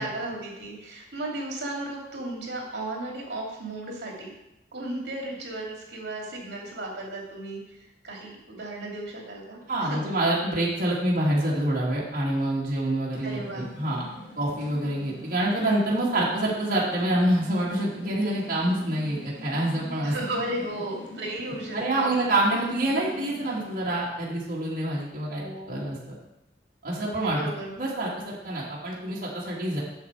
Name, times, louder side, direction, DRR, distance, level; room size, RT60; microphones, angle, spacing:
voice 1, 0.0-4.3 4.7-7.8 8.0-10.0 13.2-13.7 14.7-15.0 20.0-22.1 25.3-25.9 27.0-27.8, right 1 dB, 65° right, -1 dB, 2.7 m, -35 dB
voice 2, 9.7-14.0 14.4-20.1 21.7-25.4 25.7-26.1 26.8-27.4 27.8-29.8, right 1 dB, 50° right, -6 dB, 2.1 m, -26 dB
sound 1, 13.1-23.8, equal, 80° left, 2.7 m, -43 dB
8.1 x 7.0 x 4.6 m, 0.89 s
head